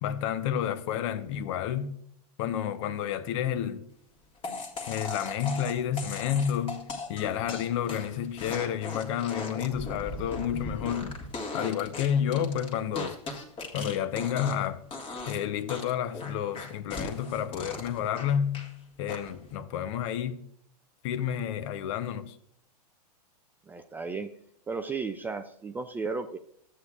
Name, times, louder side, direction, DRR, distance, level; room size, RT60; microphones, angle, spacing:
voice 1, 0.0-2.0 2.4-3.9 4.9-11.2 11.5-13.2 13.7-14.8 15.3-18.7 19.0-20.4 21.0-22.4, left 9 dB, 50° left, 0.8 m, -30 dB
sound 1, 4.4-14.7 14.9-15.4 15.7-18.7 19.1-19.5, left 2 dB, 25° left, 1.7 m, -38 dB
voice 2, 23.7-24.3 24.7-26.4, right 4 dB, 10° right, 0.3 m, -34 dB
13.0 x 8.3 x 2.4 m
hypercardioid pair, 125°, 20 cm